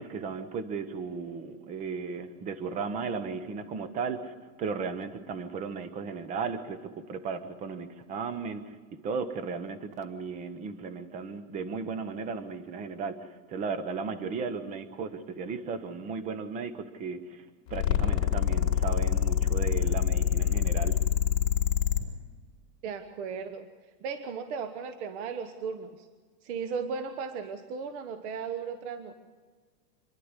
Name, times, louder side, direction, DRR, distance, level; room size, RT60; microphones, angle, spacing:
voice 1, 0.0-21.0, right 5 dB, 15° right, 13 dB, 0.9 m, -35 dB
sound 1, 17.7-22.0, left 9 dB, 45° left, 3.4 m, -25 dB
voice 2, 22.8-23.7 24.0-26.1 26.4-29.1, right 5 dB, 45° right, 9 dB, 1.3 m, -36 dB
27.0 x 11.0 x 9.7 m, 1.5 s
supercardioid pair, 160°, 50 cm